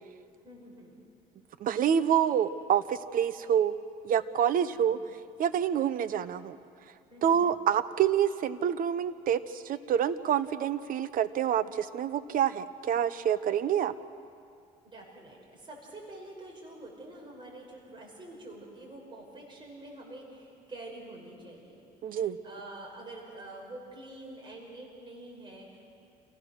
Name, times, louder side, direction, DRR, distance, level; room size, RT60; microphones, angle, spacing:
voice 1, 0.4-1.0 4.7-4.9 7.1-7.4 14.9-26.0, right 2 dB, 30° right, -1 dB, 5.4 m, -47 dB
voice 2, 1.6-3.7 4.0-5.0 5.4-6.6 7.2-13.9 22.0-22.4, right 9 dB, 55° right, 13 dB, 0.9 m, -27 dB
28.0 x 16.5 x 6.4 m, 2.6 s
cardioid pair, 110°, 17 cm